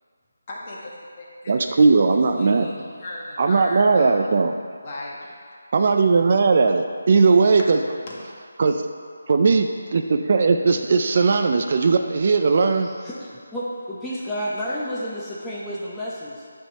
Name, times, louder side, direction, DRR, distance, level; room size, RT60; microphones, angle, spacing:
voice 1, 0.5-0.9 1.2-1.5 2.3-4.3 4.8-5.6 7.6-7.7 8.1-8.2, left 2 dB, 30° left, -5 dB, 1.4 m, -36 dB
voice 2, 1.5-2.7 3.4-4.5 5.7-7.8 8.6-8.8 9.3-12.9, right 4 dB, 45° right, 5 dB, 0.4 m, -18 dB
voice 3, 12.8-16.5, equal, 5° left, -9 dB, 0.7 m, -31 dB
9.0 x 3.4 x 5.4 m, 2.1 s
figure-of-eight pair, 165°, 0 cm